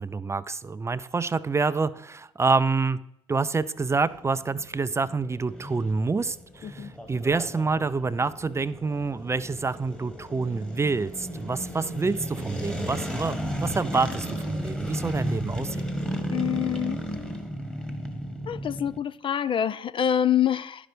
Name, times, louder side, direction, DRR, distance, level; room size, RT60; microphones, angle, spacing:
voice 1, 0.0-3.0 3.3-15.9, right 4 dB, 20° right, 15 dB, 0.5 m, -27 dB
sound 1, 3.8-19.0, equal, 5° left, 1.4 m, -34 dB
voice 2, 16.3-17.0 18.5-20.9, left 9 dB, 40° left, 16 dB, 0.4 m, -26 dB
11.0 x 5.9 x 5.0 m, 0.76 s
hypercardioid pair, 60°, 14 cm